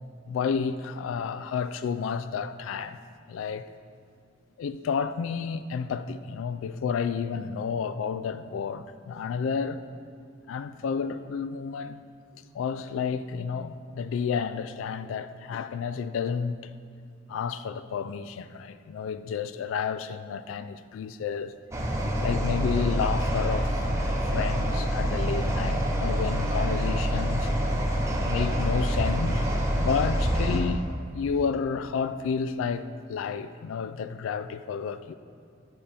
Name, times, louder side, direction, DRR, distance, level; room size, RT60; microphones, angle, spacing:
voice 1, 0.3-3.0 3.3-3.7 4.6-9.8 10.5-12.0 12.5-16.7 17.3-21.5 22.2-23.7 24.3-27.5 28.2-29.4 29.7-30.8 31.1-35.1, left 6 dB, 90° left, 0.3 m, -31 dB
sound 1, 21.7-30.6, equal, 15° right, 0.8 m, -26 dB
8.7 x 5.5 x 3.4 m
head